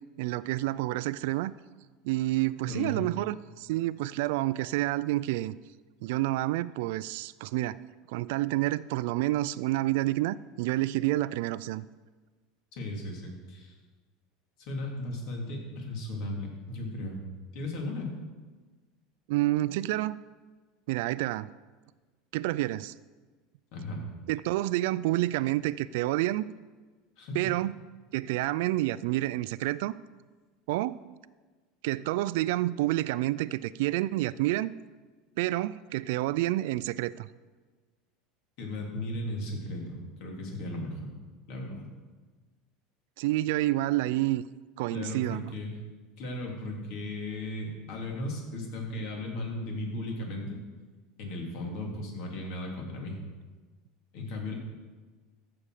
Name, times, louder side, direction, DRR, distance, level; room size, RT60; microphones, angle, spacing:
voice 1, 0.2-1.5 2.0-5.5 6.0-7.8 8.1-11.8 19.3-20.1 20.9-21.5 22.3-22.9 24.3-26.4 27.3-27.7 28.1-29.9 30.7-31.0 31.8-34.7 35.4-37.3 43.2-44.4 44.8-45.4, right 16 dB, 70° right, 18 dB, 0.3 m, -29 dB
voice 2, 2.6-3.0 12.7-13.7 14.6-17.2 17.5-18.1 23.7-24.0 27.2-27.4 38.6-41.1 41.5-41.9 44.9-45.7 46.2-50.6 51.2-53.2 54.1-54.5, left 1 dB, 55° left, 0 dB, 2.9 m, -36 dB
14.0 x 7.0 x 5.0 m, 1.4 s
supercardioid pair, 155°, 0 cm